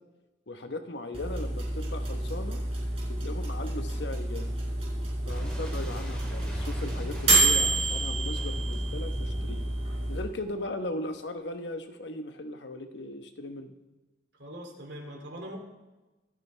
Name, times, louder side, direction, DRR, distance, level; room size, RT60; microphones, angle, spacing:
voice 1, 0.5-2.6 3.1-4.6 5.3-9.7 10.1-13.7, left 2 dB, 70° left, 7 dB, 1.0 m, -38 dB
sound 1, 1.1-10.2, right 2 dB, 30° right, 4.6 m, -29 dB
Boom, 5.3-10.8, equal, 5° left, 3.0 m, -41 dB
voice 2, 14.4-15.6, equal, 65° right, 1 dB, 2.5 m, -41 dB
25.0 x 9.0 x 3.3 m, 1.1 s
head